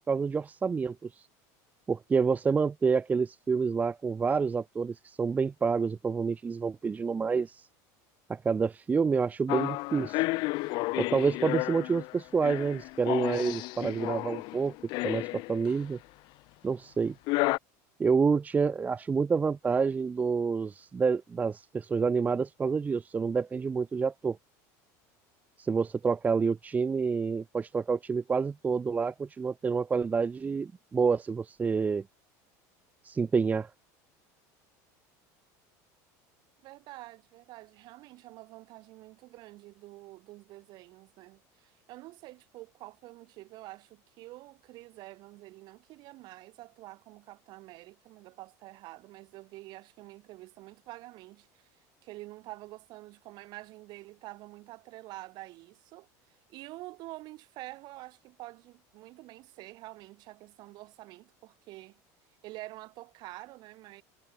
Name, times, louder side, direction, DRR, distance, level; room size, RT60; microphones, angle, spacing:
voice 1, 0.1-1.1 1.9-7.7 8.3-10.2 11.0-14.7 15.0-16.0 16.6-17.1 18.0-24.4 25.6-32.0 33.0-33.7, right 5 dB, 15° right, 1.1 m, -28 dB
sound 1, 9.5-15.8 17.3-17.6, left 23 dB, 60° left, 1.3 m, -32 dB
voice 2, 36.6-51.7 52.0-56.1 56.5-62.0 62.4-64.0, right 19 dB, 55° right, 3.9 m, -47 dB
supercardioid pair, 140°, 9 cm